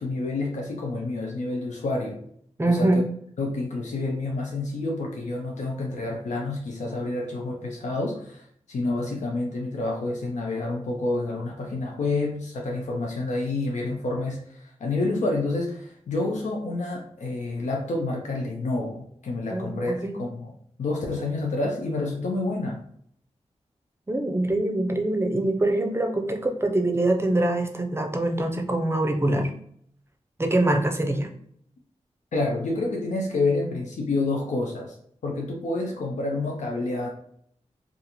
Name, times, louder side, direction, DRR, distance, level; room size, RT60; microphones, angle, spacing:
voice 1, 0.0-2.2 2.6-3.0 3.4-20.5 20.8-22.8 32.3-35.0 35.2-37.1, left 2 dB, 85° left, 0 dB, 0.5 m, -28 dB
voice 2, 2.6-3.0 19.5-20.1 24.1-29.5 30.4-31.3, right 1 dB, 20° right, 4 dB, 0.5 m, -24 dB
2.4 x 2.4 x 2.9 m, 0.66 s
cardioid pair, 50°, 12 cm